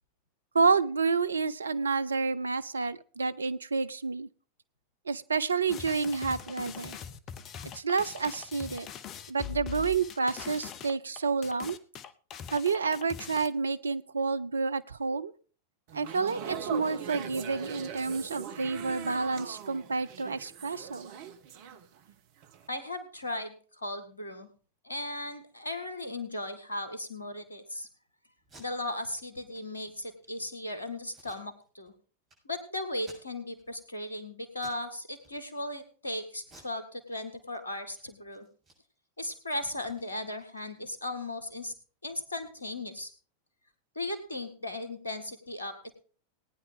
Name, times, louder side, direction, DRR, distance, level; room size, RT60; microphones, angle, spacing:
voice 1, 0.5-4.3 5.1-7.0 7.7-8.9 9.3-11.8 12.5-15.3 15.9-21.1, right 4 dB, 75° right, 15 dB, 0.6 m, -29 dB
sound 1, 5.7-13.5, left 9 dB, 35° left, 0.9 m, -42 dB
sound 2, 15.9-22.1 22.4-22.7, right 8 dB, 50° right, 1.3 m, -41 dB
voice 2, 22.7-24.5 24.8-27.9 28.6-31.9 32.5-38.5 39.2-41.7 42.0-43.1 44.0-45.9, left 1 dB, 75° left, 9 dB, 1.9 m, -37 dB
Packing tape duct tape, 28.4-28.6 29.1-29.2 29.5-29.6 30.0-30.4 31.1-31.9 32.3-32.4 32.9-33.6 34.0-34.2 34.6-34.9 35.2-35.8 36.4-37.6 37.9-38.0 38.3-40.9, right 2 dB, 30° right, 7.0 m, -57 dB
19.0 x 9.7 x 3.8 m, 0.41 s
figure-of-eight pair, 90°, 0 cm